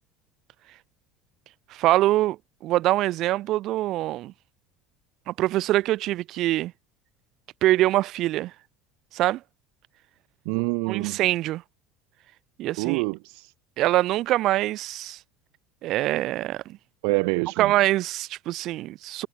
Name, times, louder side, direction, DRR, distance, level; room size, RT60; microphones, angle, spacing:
voice 1, 1.7-2.4 2.6-4.3 5.3-6.7 7.6-8.5 9.1-9.4 10.8-11.6 12.6-13.0 13.8-15.2 15.8-16.8 17.6-19.3, right 15 dB, 50° right, 1.6 m, -24 dB
voice 2, 10.5-11.2 12.8-13.5 17.0-17.7, right 40 dB or more, 75° right, 0.4 m, -26 dB
cardioid pair, 140°, 0 cm